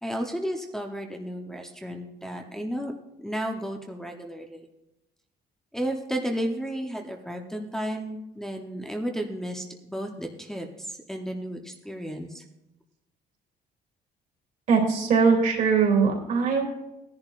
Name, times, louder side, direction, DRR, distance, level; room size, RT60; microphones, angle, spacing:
voice 1, 0.0-2.9 3.2-4.7 5.7-12.4, equal, 5° left, 1 dB, 0.7 m, -33 dB
voice 2, 14.7-16.7, right 5 dB, 50° right, 1 dB, 2.7 m, -21 dB
18.5 x 10.5 x 2.4 m, 0.93 s
cardioid pair, 175°, 17 cm